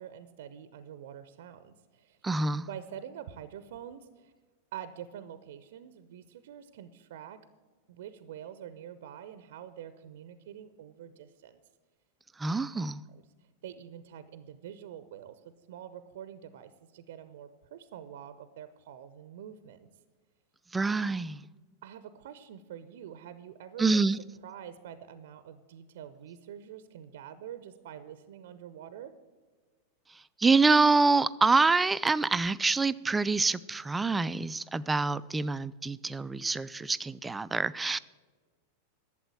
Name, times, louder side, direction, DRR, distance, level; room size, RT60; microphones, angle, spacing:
voice 1, 0.0-2.2 2.7-4.3 4.7-7.4 7.9-11.6 13.1-13.2 13.6-19.9 21.8-24.1 24.4-29.1, right 9 dB, 55° right, 0.6 m, -46 dB
voice 2, 2.2-2.7 12.4-13.0 20.7-21.4 23.8-24.2 30.4-38.0, right 3 dB, 10° right, 0.4 m, -26 dB
12.0 x 7.5 x 7.8 m
figure-of-eight pair, 90°, 0 cm